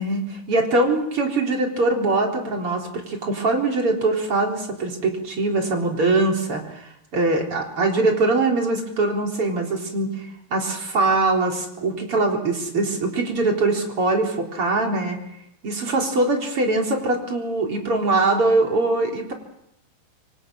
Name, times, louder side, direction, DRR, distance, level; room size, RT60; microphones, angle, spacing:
voice 1, 0.0-15.2 15.6-19.3, right 2 dB, 40° right, 1 dB, 4.7 m, -22 dB
27.0 x 26.0 x 6.4 m, 0.78 s
omnidirectional pair, 4.1 m